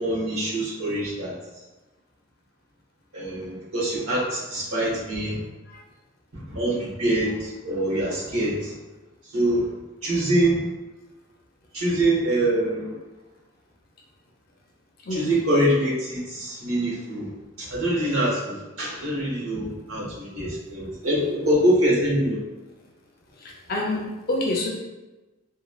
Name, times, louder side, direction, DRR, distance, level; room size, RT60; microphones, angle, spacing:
voice 1, 0.0-1.4 3.1-5.4 6.3-8.8 9.2-9.7 10.0-10.6 11.7-12.9 15.1-17.3 17.6-22.4, right 1 dB, 85° right, -7 dB, 1.2 m, -24 dB
voice 2, 23.7-24.7, left 2 dB, 45° left, -2 dB, 0.5 m, -26 dB
3.0 x 2.2 x 2.3 m, 1.1 s
head